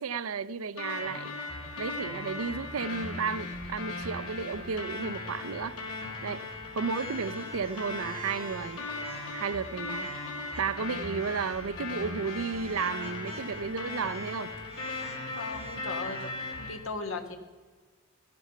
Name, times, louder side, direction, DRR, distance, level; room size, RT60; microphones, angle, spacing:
voice 1, 0.0-1.3 1.8-5.8 6.2-6.4 6.7-8.9 9.3-10.1 10.6-14.5, right 5 dB, 70° right, 0.5 m, -33 dB
sound 1, 0.8-16.7, left 2 dB, 75° left, 3.7 m, -38 dB
sound 2, 6.9-10.9 11.1-11.7 12.2-16.3, right 2 dB, 25° right, 2.4 m, -48 dB
voice 2, 15.4-16.3 16.6-17.4, left 3 dB, 60° left, 1.4 m, -37 dB
14.5 x 10.5 x 5.7 m
head